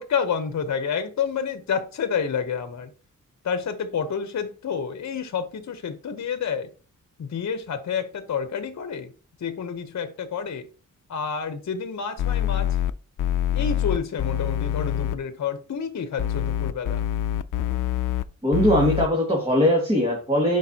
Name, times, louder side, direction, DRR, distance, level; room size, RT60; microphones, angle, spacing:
voice 1, 0.0-2.9 3.4-6.7 7.2-9.1 9.4-10.7 11.1-12.7 13.5-17.0, left 6 dB, 65° left, 0.9 m, -29 dB
sound 1, 12.2-12.9 13.2-15.2 16.2-18.2 18.5-19.1, left 11 dB, 85° left, 0.5 m, -25 dB
voice 2, 18.4-20.6, equal, 20° right, 2.0 m, -20 dB
10.5 x 4.7 x 2.8 m
wide cardioid pair, 110°, 31 cm